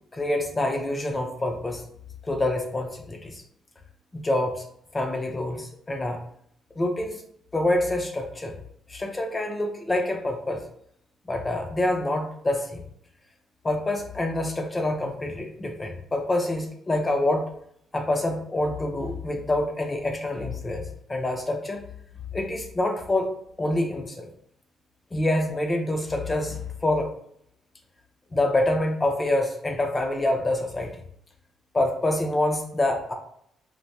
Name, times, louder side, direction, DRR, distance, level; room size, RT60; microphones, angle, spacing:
voice 1, 0.1-1.8 2.2-3.4 4.1-4.6 4.9-6.2 6.8-7.2 7.5-8.5 8.9-10.6 11.3-12.8 13.6-17.5 17.9-21.8 22.3-23.3 23.6-24.3 25.1-27.1 28.3-30.9 31.7-33.1, left 1 dB, 25° left, 2 dB, 0.4 m, -26 dB
3.2 x 2.1 x 2.7 m, 0.68 s
cardioid pair, 90°, 0 cm